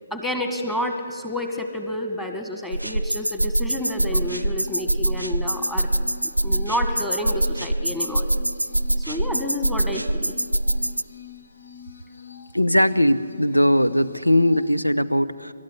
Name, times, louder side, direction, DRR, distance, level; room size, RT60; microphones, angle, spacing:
voice 1, 0.1-8.3 9.0-10.3, left 1 dB, 5° left, 6 dB, 1.9 m, -30 dB
sound 1, 2.7-11.0, right 1 dB, 90° right, 0.5 m, -24 dB
sound 2, 3.8-14.8, left 9 dB, 60° left, 1.6 m, -44 dB
voice 2, 12.5-15.5, equal, 90° left, 12 dB, 1.0 m, -19 dB
28.0 x 13.0 x 9.7 m, 2.2 s
figure-of-eight pair, 140°, 0 cm